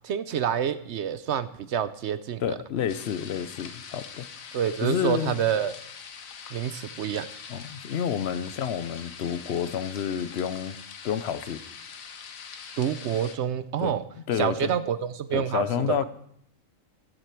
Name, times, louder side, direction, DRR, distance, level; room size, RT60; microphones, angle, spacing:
voice 1, 0.0-2.6 4.5-5.8 6.5-7.3 12.8-14.0 14.4-16.0, right 9 dB, 65° right, 13 dB, 0.8 m, -28 dB
voice 2, 2.4-4.3 4.8-5.4 7.5-10.8 11.0-11.6 13.8-14.0 14.3-14.7 15.3-16.0, left 8 dB, 60° left, 13 dB, 0.8 m, -29 dB
sound 1, 2.9-13.4, left 6 dB, 80° left, 1.4 m, -43 dB
14.0 x 8.1 x 4.5 m, 0.69 s
omnidirectional pair, 1.4 m